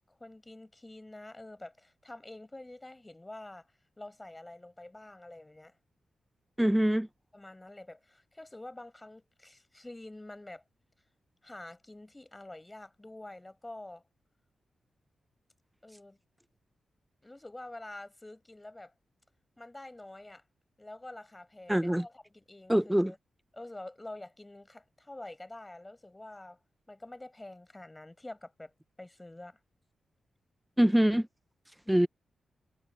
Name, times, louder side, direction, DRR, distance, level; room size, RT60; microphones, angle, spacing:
voice 1, 0.1-3.7 4.0-5.7 7.3-10.6 11.4-14.0 15.8-16.2 17.2-18.9 19.6-20.4 20.8-23.2 23.5-26.6 26.9-28.7 29.0-29.6 31.8-32.1, left 2 dB, 15° left, 5.0 m, -47 dB
voice 2, 6.6-7.1 21.7-22.1 22.7-23.1 30.8-31.3 31.9-32.1, right 1 dB, 5° right, 0.4 m, -24 dB
wide cardioid pair, 105°, 0 cm